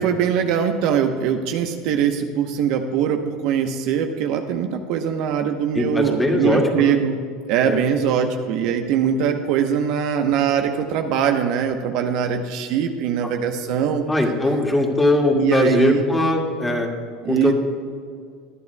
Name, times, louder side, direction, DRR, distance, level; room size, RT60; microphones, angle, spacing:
voice 1, 0.0-7.2 7.5-14.0 15.3-16.1 17.2-17.5, right 8 dB, 65° right, 5 dB, 1.0 m, -22 dB
voice 2, 5.7-7.0 7.7-7.8 14.1-16.9 17.2-17.5, left 1 dB, 10° left, 0 dB, 2.2 m, -20 dB
20.5 x 10.5 x 2.3 m, 2.1 s
supercardioid pair, 95°, 0 cm